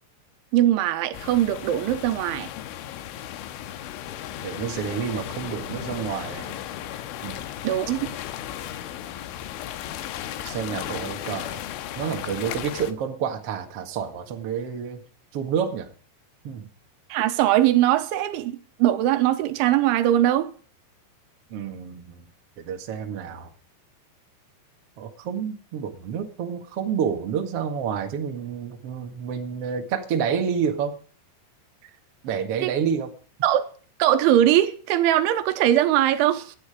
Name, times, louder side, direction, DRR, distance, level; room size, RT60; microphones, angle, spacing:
voice 1, 0.5-2.5 7.6-8.0 17.1-20.5 32.6-32.7 33.4-33.7 34.0-36.6, right 12 dB, 80° right, 3.4 m, -21 dB
sound 1, 1.1-12.9, left 11 dB, 90° left, 3.6 m, -35 dB
voice 2, 4.4-6.6 7.2-7.5 10.4-11.6 12.0-15.0 15.3-15.9 16.4-16.7 21.5-22.2 22.6-23.5 25.0-31.0 32.2-33.1, right 7 dB, 55° right, 1.7 m, -29 dB
17.0 x 11.5 x 4.9 m
omnidirectional pair, 5.5 m